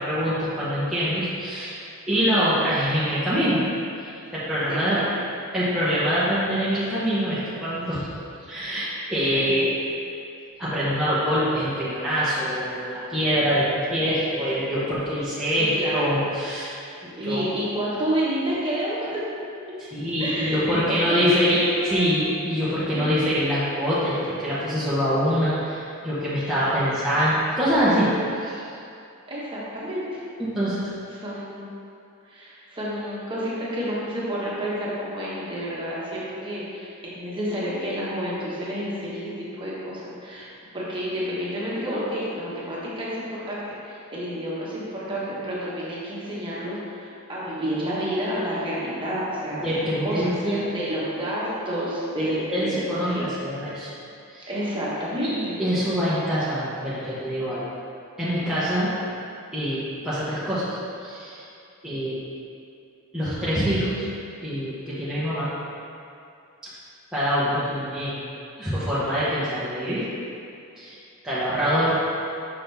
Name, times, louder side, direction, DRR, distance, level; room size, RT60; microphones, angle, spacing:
voice 1, 0.0-1.8 2.1-3.6 4.0-5.0 5.5-8.1 8.5-9.7 10.6-16.7 17.0-17.4 19.8-28.6 30.5-30.9 49.6-50.6 52.2-53.9 54.3-54.5 55.2-57.7 58.2-58.9 59.5-61.4 61.8-62.2 63.1-64.1 64.4-65.5 66.6-66.7 67.1-68.1 68.6-70.1 70.8-71.0 71.2-72.0, equal, 5° right, -12 dB, 1.1 m, -24 dB
voice 2, 4.7-5.2 9.3-9.6 15.7-16.1 17.1-19.2 20.2-21.4 21.8-22.1 22.9-23.0 29.3-30.2 31.1-31.7 32.3-40.5 40.7-53.2 54.5-55.6, equal, 25° right, -8 dB, 1.4 m, -30 dB
6.1 x 5.8 x 3.5 m, 2.5 s
head